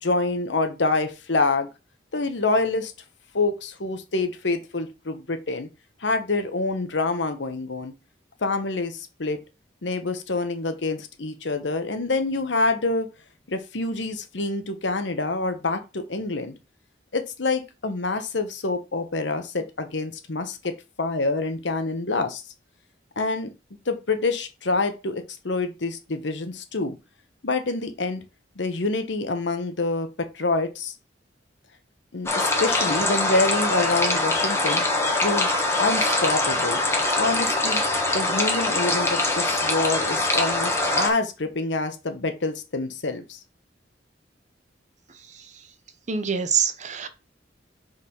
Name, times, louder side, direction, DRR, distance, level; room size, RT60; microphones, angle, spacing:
voice 1, 0.0-1.7 2.1-2.9 3.3-5.7 6.0-7.9 8.4-9.4 9.8-13.1 13.5-16.5 17.1-20.7 21.0-22.4 23.2-23.5 23.9-27.0 27.4-28.2 28.6-30.9 32.1-34.8 35.2-35.5 35.8-36.8 37.2-37.8 38.1-43.4, left 3 dB, 85° left, 1.1 m, -26 dB
sound 1, 32.3-41.1, left 2 dB, 15° left, 1.3 m, -23 dB
voice 2, 46.1-47.1, right 7 dB, 40° right, 0.8 m, -24 dB
4.9 x 4.1 x 5.5 m
head